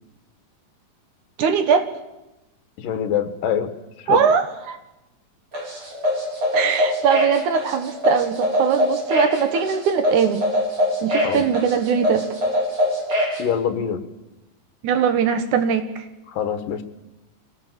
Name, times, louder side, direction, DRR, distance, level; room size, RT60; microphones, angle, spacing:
voice 1, 1.4-1.9 4.1-4.8 6.5-10.5 11.0-12.2 14.8-16.1, right 7 dB, 70° right, 9 dB, 2.6 m, -21 dB
voice 2, 2.8-3.7 4.1-4.2 11.2-11.4 13.4-14.0 16.3-16.8, left 8 dB, 80° left, 9 dB, 2.9 m, -24 dB
sound 1, 5.5-13.4, left 1 dB, 35° right, 5.2 m, -22 dB
25.0 x 17.5 x 7.5 m, 1.0 s
omnidirectional pair, 3.8 m